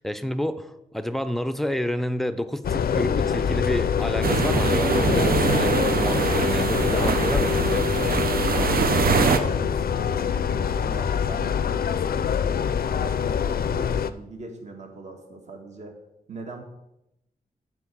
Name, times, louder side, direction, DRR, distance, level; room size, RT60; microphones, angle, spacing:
voice 1, 0.0-7.9, equal, ahead, 11 dB, 0.4 m, -29 dB
sound 1, 2.6-14.1, left 7 dB, 80° left, 0.4 m, -25 dB
sound 2, 4.2-9.4, right 5 dB, 75° right, 0.7 m, -23 dB
voice 2, 8.5-16.0 16.3-16.6, right 2 dB, 50° right, 3 dB, 1.5 m, -41 dB
9.9 x 4.6 x 6.0 m, 0.87 s
wide cardioid pair, 155°, 15 cm